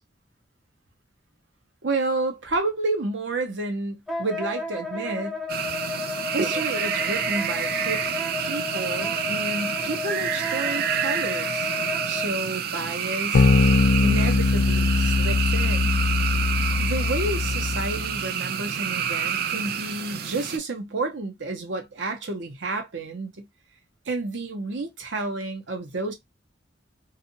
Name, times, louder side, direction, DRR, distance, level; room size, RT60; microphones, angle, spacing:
voice 1, 1.8-5.4 6.3-8.1 8.4-11.7 12.0-13.5 14.0-16.0 16.8-23.5 24.1-26.1, right 2 dB, 75° right, 0.8 m, -30 dB
Wind instrument woodwind instrument, 4.1-12.3, left 3 dB, ahead, 0.5 m, -32 dB
sound 1, 5.5-20.6, right 8 dB, 55° right, 0.4 m, -28 dB
sound 2, 13.3-18.1, left 4 dB, 70° left, 0.4 m, -21 dB
2.6 x 2.4 x 2.7 m
head